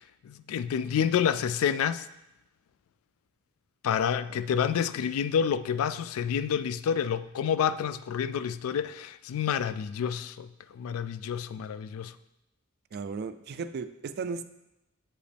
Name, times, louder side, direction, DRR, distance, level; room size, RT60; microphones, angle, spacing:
voice 1, 0.0-2.1 3.8-10.5 10.7-12.1, left 8 dB, 90° left, 14 dB, 0.3 m, -29 dB
voice 2, 12.9-14.4, right 5 dB, 50° right, 11 dB, 0.3 m, -35 dB
7.3 x 5.1 x 3.4 m, 0.90 s
head